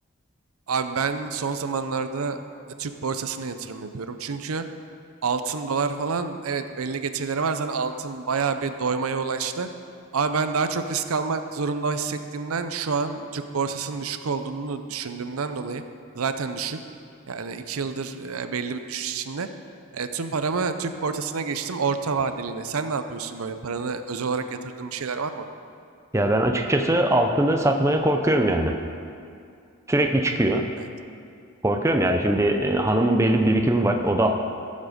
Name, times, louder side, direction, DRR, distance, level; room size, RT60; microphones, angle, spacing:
voice 1, 0.7-2.4 2.8-4.6 5.2-9.7 10.1-15.8 16.1-16.8 17.3-19.5 19.9-25.5 30.8-30.9, right 5 dB, 85° right, 9 dB, 0.6 m, -28 dB
voice 2, 26.1-28.8 29.9-30.7 31.6-34.3, right 1 dB, 15° right, 3 dB, 0.6 m, -21 dB
14.5 x 7.3 x 5.1 m, 2.4 s
head